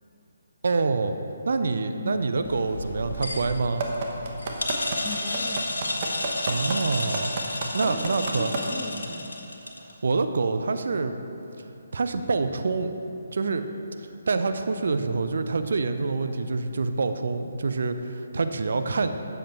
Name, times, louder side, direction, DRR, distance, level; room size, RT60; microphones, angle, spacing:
voice 1, 0.6-1.1 1.5-3.9 6.5-7.3 7.7-8.5 10.0-11.1 11.9-12.9 13.3-13.7 14.3-19.1, right 4 dB, 65° right, 8 dB, 0.5 m, -26 dB
voice 2, 1.9-2.4 5.0-5.7 7.8-9.3, left 3 dB, 10° left, -4 dB, 0.6 m, -39 dB
sound 1, 2.4-9.9, left 2 dB, 80° left, 1.1 m, -32 dB
sound 2, 3.8-8.6 9.1-9.2, right 5 dB, 40° right, 1.0 m, -30 dB
7.6 x 7.5 x 4.5 m, 2.9 s
figure-of-eight pair, 145°, 0 cm